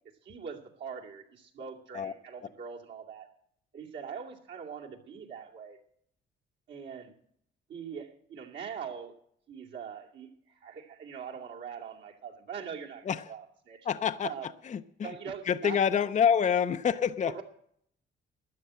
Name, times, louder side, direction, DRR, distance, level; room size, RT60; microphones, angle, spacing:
voice 1, 0.2-3.3 3.7-5.8 6.7-7.1 7.7-9.1 9.5-13.9 14.2-14.5 15.0-15.8 17.2-17.4, right 7 dB, 65° right, -1 dB, 2.4 m, -42 dB
voice 2, 13.9-14.3 14.7-15.1 15.5-17.3, left 7 dB, 40° left, 11 dB, 0.6 m, -27 dB
12.5 x 9.7 x 7.6 m, 0.68 s
cardioid pair, 90°, 20 cm